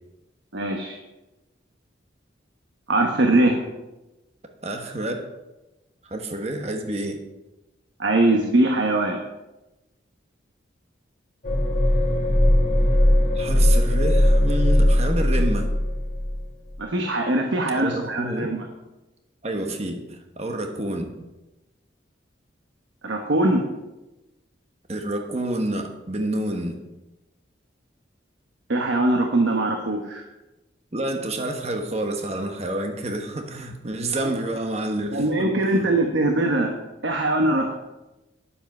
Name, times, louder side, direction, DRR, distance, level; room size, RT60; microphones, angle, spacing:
voice 1, 0.5-1.0 2.9-3.6 8.0-9.2 16.8-18.6 23.0-23.6 28.7-30.2 34.2-34.3 35.1-36.7 37.0-37.7, right 2 dB, 75° right, 2 dB, 1.1 m, -21 dB
voice 2, 4.6-5.2 6.0-7.2 13.3-15.7 17.7-18.5 19.4-21.1 24.9-26.8 30.9-35.9, right 1 dB, 35° right, 4 dB, 1.1 m, -29 dB
sound 1, 11.4-16.4 16.7-16.8, left 1 dB, 40° left, 2.0 m, -19 dB
10.0 x 7.6 x 5.5 m, 1.0 s
head